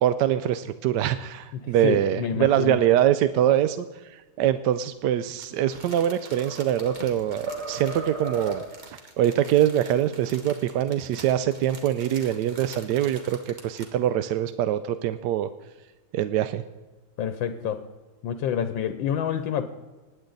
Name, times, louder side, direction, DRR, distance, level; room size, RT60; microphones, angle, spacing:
voice 1, 0.0-15.5 16.1-16.6, right 11 dB, 75° right, 12 dB, 1.0 m, -24 dB
voice 2, 1.5-2.8 17.2-17.9 18.2-19.7, left 8 dB, 75° left, 11 dB, 1.4 m, -28 dB
Crumpling crinkling, 5.4-14.0 14.5-14.6, right 1 dB, 25° right, 1.6 m, -46 dB
sound 1, 5.7-7.1 7.5-8.9, right 2 dB, 90° right, 3.1 m, -36 dB
20.0 x 8.9 x 3.9 m, 1.2 s
omnidirectional pair, 2.2 m